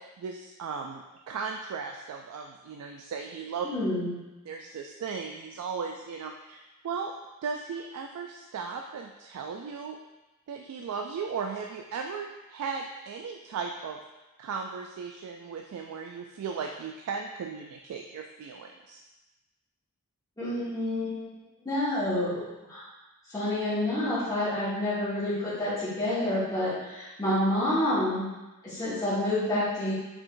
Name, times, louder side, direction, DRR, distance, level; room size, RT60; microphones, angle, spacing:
voice 1, 0.0-3.7 4.5-7.1 7.4-10.0 10.5-14.0 14.4-19.0, right 5 dB, 75° right, 3 dB, 0.3 m, -36 dB
voice 2, 3.7-4.2 20.4-21.2 21.6-22.8 23.3-28.3 28.6-29.9, left 1 dB, 15° left, -13 dB, 1.4 m, -28 dB
4.7 x 3.8 x 2.5 m, 1.1 s
head